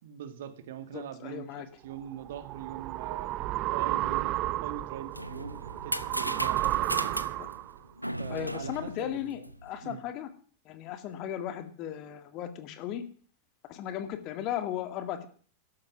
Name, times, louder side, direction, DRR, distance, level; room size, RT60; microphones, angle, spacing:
voice 1, 0.0-3.3 3.7-7.0 8.2-9.5 9.8-10.0, right 9 dB, 60° right, 10 dB, 1.8 m, -42 dB
voice 2, 0.9-1.7 7.4-7.5 8.3-10.3 10.7-13.0 13.7-15.3, left 11 dB, 40° left, 8 dB, 2.0 m, -36 dB
sound 1, 2.0-7.8, right 16 dB, 40° right, 0.5 m, -32 dB
sound 2, 4.8-9.9, equal, 90° right, 0.7 m, -37 dB
13.0 x 12.0 x 6.0 m, 0.44 s
figure-of-eight pair, 90°, 0 cm